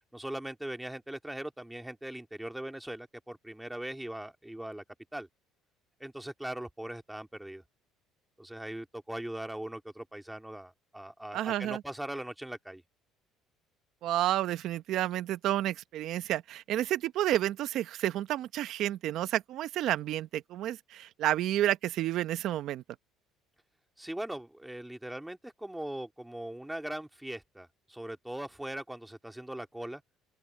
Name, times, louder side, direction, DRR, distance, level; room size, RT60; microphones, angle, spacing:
voice 1, 0.1-4.8 5.1-5.3 6.0-7.6 8.4-12.8 24.0-30.0, right 1 dB, 5° right, 2.4 m, -40 dB
voice 2, 11.3-11.8 14.0-22.8, right 13 dB, 65° right, 1.0 m, -30 dB
open air
cardioid pair, 105°, 0 cm